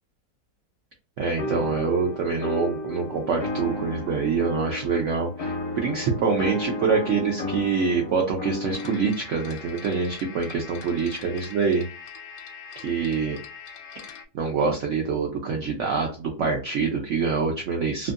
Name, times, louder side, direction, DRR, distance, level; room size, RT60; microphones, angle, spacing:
voice 1, 1.2-11.8 12.8-13.4 14.3-18.1, right 5 dB, 80° right, 1 dB, 0.6 m, -25 dB
sound 1, 1.4-9.2, left 1 dB, 60° left, 0.9 m, -33 dB
sound 2, 8.7-14.2, left 6 dB, 80° left, 1.2 m, -42 dB
2.9 x 2.6 x 2.4 m, 0.34 s
omnidirectional pair, 1.9 m